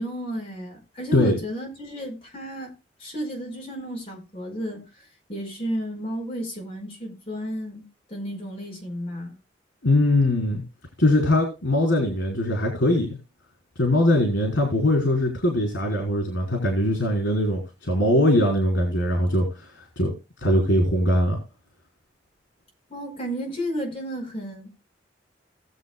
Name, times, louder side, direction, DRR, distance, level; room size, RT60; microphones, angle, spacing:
voice 1, 0.0-2.7 3.0-9.3 22.9-24.7, equal, 30° left, 5.0 m, -33 dB
voice 2, 9.8-10.6 11.0-13.2 13.8-20.1 20.4-21.4, left 1 dB, 80° left, 4.0 m, -21 dB
19.5 x 7.6 x 2.2 m
head